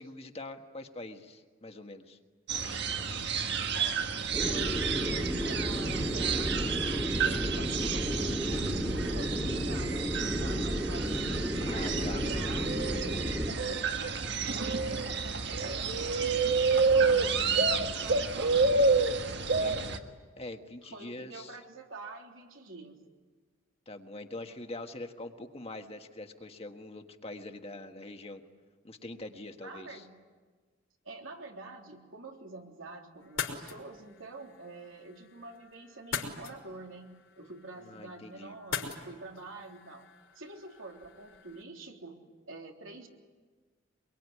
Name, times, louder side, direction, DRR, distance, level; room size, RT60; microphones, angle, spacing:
voice 1, 0.0-2.2 11.6-12.2 19.6-20.0 20.4-21.5 23.9-28.4 28.8-30.0 37.8-38.5, left 2 dB, 30° left, 5 dB, 1.5 m, -43 dB
sound 1, 2.5-20.0, right 4 dB, 55° right, 1.5 m, -30 dB
voice 2, 3.7-4.0 4.5-6.7 7.2-8.5 9.1-11.2 11.7-14.2 14.6-18.9 20.8-23.0 29.6-30.2 31.1-40.1 40.4-42.2 42.5-43.1, right 2 dB, 80° right, 2 dB, 3.4 m, -47 dB
sound 2, 4.3-13.5, equal, 5° right, 1.8 m, -32 dB
sound 3, 33.2-41.6, left 6 dB, 75° left, 4.3 m, -42 dB
24.5 x 23.0 x 9.7 m, 1.4 s
head